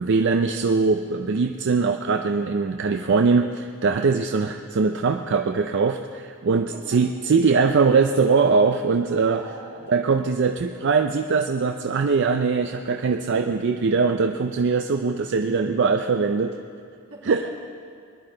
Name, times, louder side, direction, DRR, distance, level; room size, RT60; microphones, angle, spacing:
voice 1, 0.0-9.4 9.9-16.6 17.3-17.5, right 4 dB, 55° right, 5 dB, 0.4 m, -21 dB
voice 2, 6.5-7.0 9.3-9.9 17.1-17.5, right 3 dB, 80° right, -5 dB, 2.9 m, -41 dB
20.0 x 10.5 x 3.9 m, 2.3 s
head